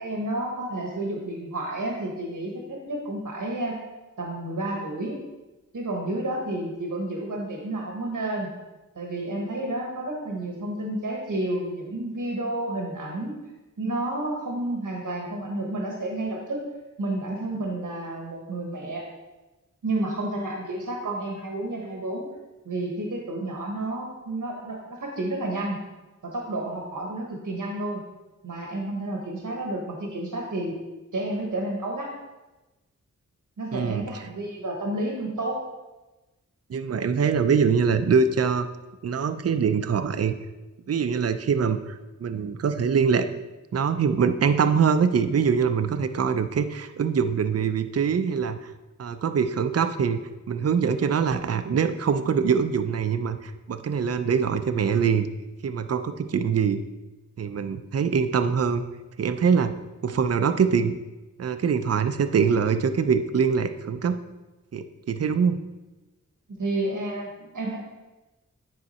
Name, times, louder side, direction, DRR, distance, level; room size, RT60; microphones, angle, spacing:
voice 1, 0.0-3.8 4.2-5.2 5.7-8.5 8.9-13.3 13.8-16.6 17.0-19.0 19.8-22.3 22.6-25.8 26.2-28.0 28.4-30.8 31.1-32.1 33.6-35.6 66.6-67.8, right 1 dB, 80° right, -1 dB, 1.2 m, -30 dB
voice 2, 33.7-34.1 36.7-38.7 39.0-40.3 40.9-43.3 43.7-48.6 49.0-50.2 50.5-55.3 55.6-56.8 57.4-58.8 59.2-59.8 60.0-61.0 61.4-64.2 64.7-65.6, right 6 dB, 50° right, 10 dB, 0.5 m, -23 dB
9.6 x 4.6 x 4.2 m, 1.1 s
wide cardioid pair, 70°, 31 cm